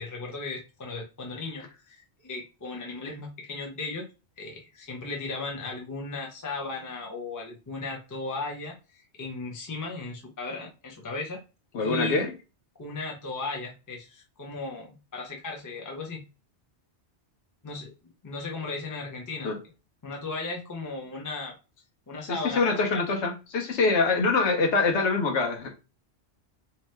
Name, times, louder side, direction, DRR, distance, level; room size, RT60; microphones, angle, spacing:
voice 1, 0.0-4.0 4.4-11.4 11.8-12.2 12.8-16.2 17.6-17.9 18.2-19.5 20.0-21.5 22.1-23.0, left 3 dB, 25° left, 0.5 m, -36 dB
voice 2, 11.7-12.3 19.4-19.6 22.3-25.7, left 3 dB, 80° left, 1.1 m, -24 dB
2.8 x 2.2 x 3.2 m
omnidirectional pair, 1.2 m